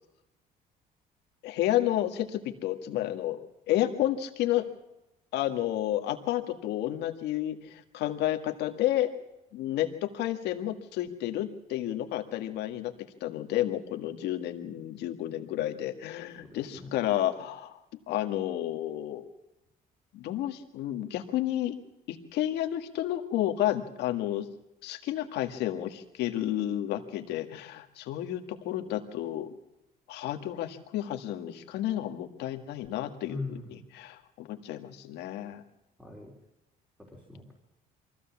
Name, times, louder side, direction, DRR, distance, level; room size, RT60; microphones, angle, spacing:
voice 1, 1.4-3.4 3.7-4.7 5.3-9.1 9.5-12.9 13.2-17.8 18.1-19.3 20.1-21.8 22.1-24.5 24.8-29.5 30.1-33.6 33.9-35.6, left 13 dB, 85° left, 5 dB, 1.9 m, -31 dB
voice 2, 16.4-16.9 33.3-33.7 36.0-36.3 37.0-37.5, left 3 dB, 5° right, -2 dB, 4.0 m, -41 dB
23.5 x 15.5 x 7.3 m, 0.92 s
cardioid pair, 110°, 17 cm